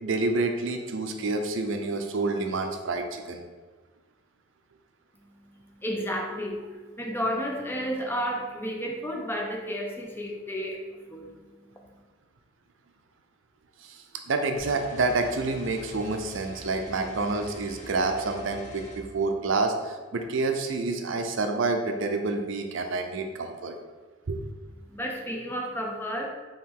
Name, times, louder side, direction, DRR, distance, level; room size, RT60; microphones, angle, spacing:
voice 1, 0.0-3.4 13.8-23.7 24.3-24.4, right 3 dB, 70° right, 5 dB, 0.5 m, -28 dB
voice 2, 5.8-11.3 24.9-26.3, equal, 10° left, 0 dB, 0.5 m, -32 dB
sound 1, 14.6-19.0, left 1 dB, 35° left, 0.9 m, -44 dB
4.6 x 3.0 x 3.7 m, 1.3 s
head